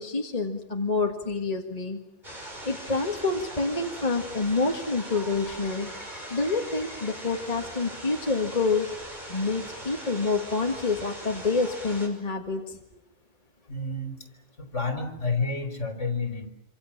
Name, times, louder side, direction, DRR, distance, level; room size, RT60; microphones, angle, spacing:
voice 1, 0.0-2.0 2.7-5.9 6.3-8.9 9.3-12.8, left 3 dB, 30° left, 2 dB, 2.0 m, -27 dB
sound 1, 2.2-12.1, right 1 dB, 30° right, 6.1 m, -40 dB
voice 2, 13.7-14.2 14.6-16.5, left 3 dB, 60° left, 6 dB, 4.3 m, -30 dB
26.5 x 26.5 x 7.4 m, 0.83 s
omnidirectional pair, 1.4 m